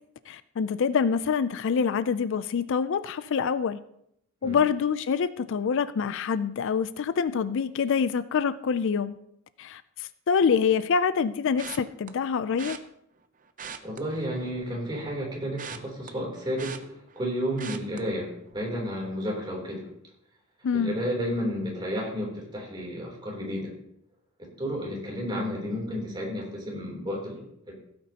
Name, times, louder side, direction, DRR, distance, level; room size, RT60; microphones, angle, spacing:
voice 1, 0.3-3.8 4.4-9.2 9.6-12.8 20.6-21.0, left 6 dB, 60° left, 15 dB, 0.4 m, -26 dB
sound 1, 11.6-12.1 12.6-12.8 13.5-14.7 15.0-17.3 17.6-18.0 18.5-18.7 19.0-19.1, right 7 dB, 40° right, 0.7 m, -41 dB
voice 2, 13.8-19.9 20.7-23.7 24.4-27.7, equal, 20° right, -2 dB, 3.3 m, -32 dB
16.5 x 8.7 x 2.9 m, 0.75 s
head